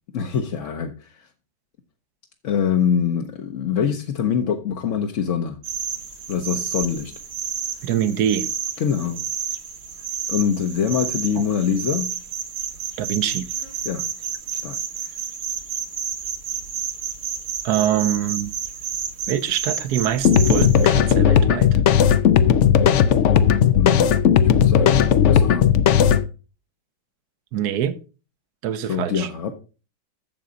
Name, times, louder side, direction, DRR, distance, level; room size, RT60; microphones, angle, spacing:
voice 1, 0.1-1.3 2.4-5.6 6.3-7.1 8.8-9.2 10.3-12.2 13.8-14.0 14.5-15.1 23.7-24.1 24.5-25.7 28.9-29.5, left 7 dB, 55° left, 1.0 m, -24 dB
sound 1, 5.6-20.9, right 7 dB, 85° right, 2.2 m, -30 dB
voice 2, 7.8-8.5 11.4-11.5 13.0-13.5 17.6-18.5 19.3-21.8 27.5-28.0 28.6-29.3, right 10 dB, 65° right, 1.2 m, -24 dB
sound 2, 20.2-26.2, left 8 dB, 75° left, 0.6 m, -16 dB
7.6 x 7.1 x 5.1 m
omnidirectional pair, 2.0 m